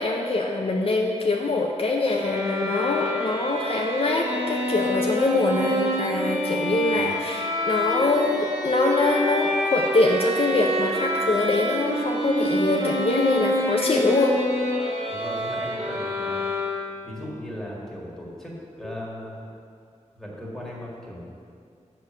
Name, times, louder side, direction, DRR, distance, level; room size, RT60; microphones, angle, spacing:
voice 1, 0.0-14.3 18.8-18.9, left 2 dB, 50° left, 0 dB, 0.6 m, -24 dB
sound 1, 2.1-17.1, equal, 50° right, 2.0 m, -27 dB
voice 2, 15.1-16.5 17.0-19.4 20.1-21.2, equal, 5° left, -4 dB, 1.8 m, -37 dB
6.7 x 5.9 x 6.2 m, 2.4 s
wide cardioid pair, 110°, 12 cm